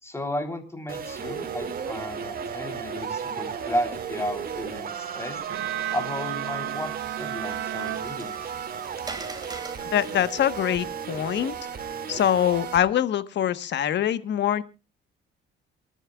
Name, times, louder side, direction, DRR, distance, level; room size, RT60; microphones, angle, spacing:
voice 1, 0.0-5.4 5.9-6.9 7.2-8.5, left 1 dB, 15° left, 6 dB, 3.7 m, -33 dB
sound 1, 0.9-12.8, right 7 dB, 45° right, 2.4 m, -34 dB
Bowed string instrument, 5.5-8.8, right 13 dB, 70° right, 0.7 m, -35 dB
Water, 6.8-12.2, right 3 dB, 20° right, 3.3 m, -44 dB
voice 2, 9.8-11.6 12.1-14.6, left 10 dB, 60° left, 13 dB, 1.3 m, -24 dB
28.0 x 11.0 x 2.4 m, 0.30 s
cardioid pair, 105°, 21 cm